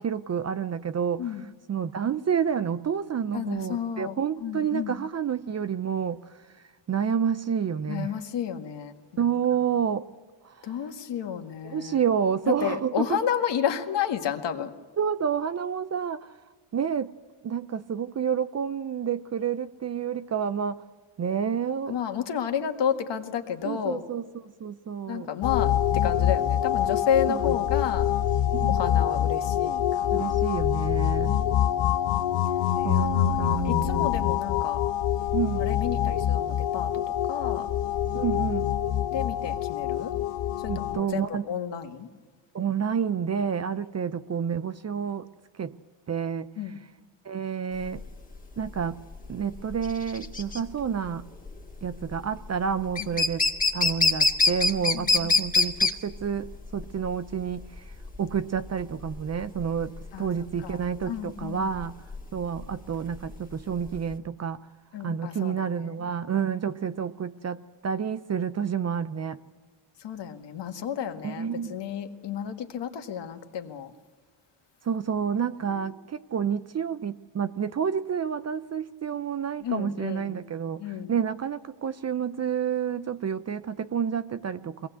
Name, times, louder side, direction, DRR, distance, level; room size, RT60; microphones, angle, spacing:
voice 1, 0.0-1.3 1.7-6.3 6.9-8.1 9.2-10.1 10.4-10.8 11.6-13.2 15.0-16.3 16.7-17.1 17.4-20.8 21.2-22.0 23.6-25.3 27.3-27.4 28.5-28.8 30.1-31.4 32.8-34.3 35.3-35.7 38.1-38.7 40.7-41.5 42.5-45.3 45.5-45.7 46.1-46.7 47.2-48.0 48.6-49.0 49.3-51.2 51.8-53.5 53.7-57.9 58.2-61.9 62.3-64.6 65.0-69.4 71.2-71.8 74.8-84.9, right 7 dB, 30° right, 13 dB, 0.6 m, -29 dB
voice 2, 3.3-5.0 7.9-9.3 10.6-12.0 12.6-14.7 21.9-24.0 25.1-28.1 28.7-30.4 31.0-31.2 32.8-34.8 35.6-37.0 37.3-37.7 39.1-40.1 40.6-42.1 46.6-46.8 53.0-53.1 54.9-55.4 60.1-60.3 60.6-60.8 61.1-61.7 64.9-65.7 70.0-73.9 75.7-75.8 79.6-80.4 80.8-81.1, left 8 dB, 55° left, 6 dB, 1.8 m, -31 dB
sound 1, 25.4-41.0, left 11 dB, 80° left, 1.0 m, -25 dB
sound 2, 47.8-64.1, left 3 dB, 15° left, 1.9 m, -26 dB
22.0 x 18.5 x 8.1 m, 1.4 s
cardioid pair, 105°, 50 cm